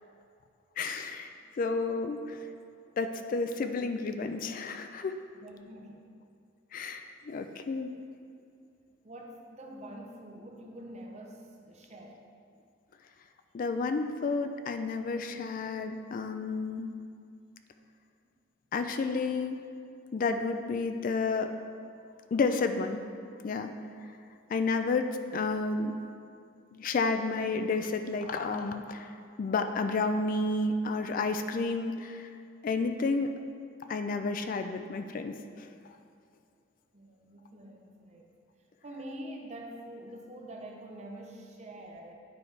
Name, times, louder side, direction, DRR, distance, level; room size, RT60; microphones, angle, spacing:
voice 1, 0.8-1.3 1.6-2.4 3.0-5.2 6.7-7.9 13.5-16.9 18.7-19.6 20.1-21.5 22.3-23.0 23.4-23.7 24.5-26.0 26.7-29.1 29.4-32.3 32.6-33.3 33.8-35.7, left 3 dB, 45° left, 7 dB, 0.3 m, -31 dB
voice 2, 5.3-6.1 9.0-12.2 36.9-38.3 38.8-42.1, right 1 dB, 35° right, 1 dB, 0.7 m, -45 dB
9.4 x 4.8 x 3.3 m, 2.3 s
head